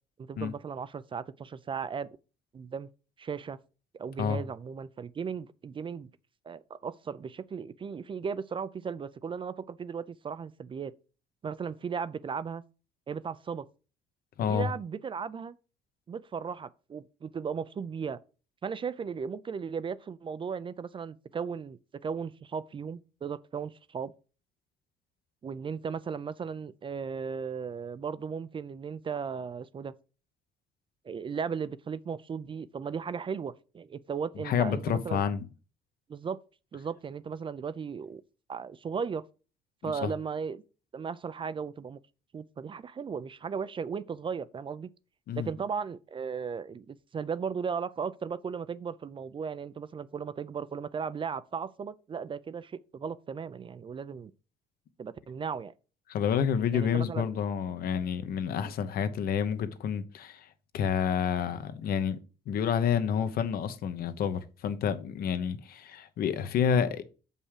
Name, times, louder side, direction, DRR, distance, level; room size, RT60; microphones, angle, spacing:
voice 1, 0.2-2.1 2.5-2.9 3.2-3.6 3.9-6.1 6.4-10.9 11.4-12.6 13.1-13.7 14.5-15.6 16.1-18.2 18.6-24.1 25.4-29.9 31.0-35.2 36.1-36.4 36.7-38.2 38.5-39.2 39.8-40.6 40.9-42.0 42.3-44.9 45.4-54.3 55.0-55.7 56.7-57.2 58.6-58.7, right 6 dB, 30° right, 0.5 m, -36 dB
voice 2, 14.4-14.7 34.3-35.4 39.8-40.1 45.3-45.5 56.1-62.2 62.5-67.0, left 7 dB, 60° left, 1.1 m, -29 dB
7.2 x 5.5 x 4.9 m
cardioid pair, 110°, 17 cm